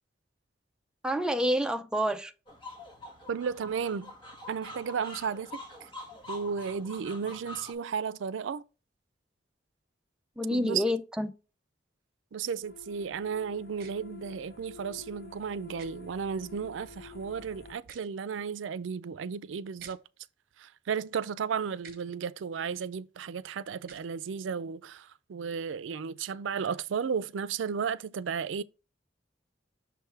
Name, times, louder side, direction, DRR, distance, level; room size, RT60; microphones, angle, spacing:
voice 1, 1.0-2.3 10.4-11.3, equal, 5° right, 0.4 m, -28 dB
sound 1, 2.5-7.7, left 2 dB, 25° left, 1.3 m, -45 dB
voice 2, 3.3-4.1 4.5-5.6 6.3-8.6 10.5-10.8 12.3-20.0 20.6-28.6, right 6 dB, 85° right, 0.4 m, -34 dB
sound 2, 12.6-17.7, left 5 dB, 55° left, 0.9 m, -49 dB
sound 3, 13.8-13.9 15.8-15.9 17.8-18.1 19.8-20.0 21.8-22.0 23.8-24.1, right 7 dB, 55° right, 1.0 m, -50 dB
6.3 x 3.4 x 4.5 m
head